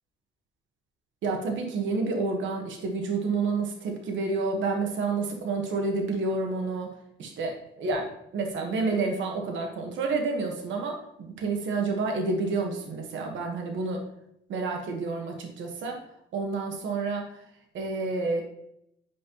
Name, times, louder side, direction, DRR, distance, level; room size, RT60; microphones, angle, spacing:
voice 1, 1.2-6.9 7.2-14.0 14.5-16.0 16.3-17.3 17.7-18.4, right 3 dB, 75° right, 2 dB, 1.3 m, -29 dB
8.4 x 5.3 x 3.0 m, 0.77 s
cardioid pair, 90°, 20 cm